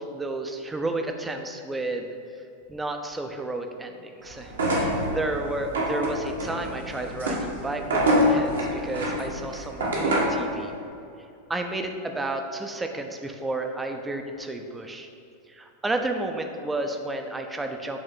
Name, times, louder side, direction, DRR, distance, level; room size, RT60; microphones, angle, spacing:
voice 1, 0.0-2.1 2.7-10.7 11.5-15.1 15.5-18.0, right 2 dB, 10° right, 5 dB, 0.5 m, -32 dB
sound 1, 4.5-10.4, equal, 70° right, 1.2 m, -26 dB
7.8 x 3.5 x 4.0 m, 2.6 s
figure-of-eight pair, 90°, 0 cm